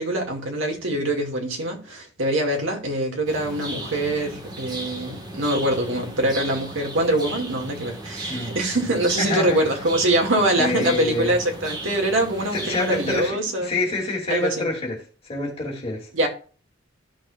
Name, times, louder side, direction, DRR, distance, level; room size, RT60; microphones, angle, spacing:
voice 1, 0.0-13.7 14.3-14.7 16.1-16.3, right 1 dB, 85° right, 2.2 m, -24 dB
sound 1, 3.3-13.3, right 2 dB, 20° right, 1.6 m, -36 dB
voice 2, 9.2-9.6 10.6-11.4 12.5-15.0 15.3-16.1, left 2 dB, 30° left, 2.6 m, -27 dB
14.0 x 6.2 x 2.4 m
head